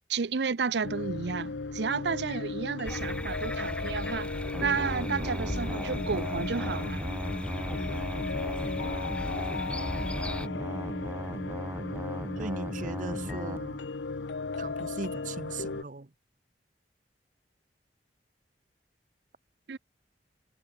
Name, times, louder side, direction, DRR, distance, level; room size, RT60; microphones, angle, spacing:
voice 1, 0.1-7.1 19.7-19.8, right 5 dB, 75° right, 0.6 m, -32 dB
sound 1, 0.8-15.8, left 4 dB, 90° left, 0.7 m, -36 dB
sound 2, 2.8-10.5, equal, 5° left, 1.1 m, -37 dB
sound 3, 4.5-13.6, equal, 15° right, 2.0 m, -37 dB
voice 2, 12.4-13.8 14.6-16.1, right 3 dB, 45° right, 0.9 m, -39 dB
head